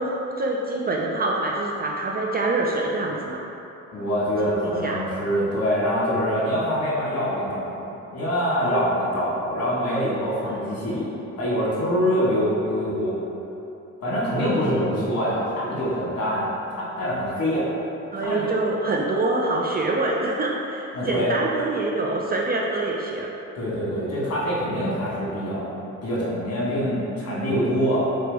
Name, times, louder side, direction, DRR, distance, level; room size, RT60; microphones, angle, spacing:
voice 1, 0.0-3.4 4.4-5.0 10.5-10.6 14.4-15.0 18.1-23.3, right 2 dB, 30° right, -2 dB, 0.4 m, -26 dB
voice 2, 3.9-7.7 8.1-11.1 11.4-13.2 14.0-17.7 18.2-18.5 20.9-21.3 23.6-25.7 26.0-28.1, equal, 55° left, -7 dB, 1.5 m, -24 dB
3.8 x 3.2 x 3.4 m, 3.0 s
cardioid pair, 90°, 30 cm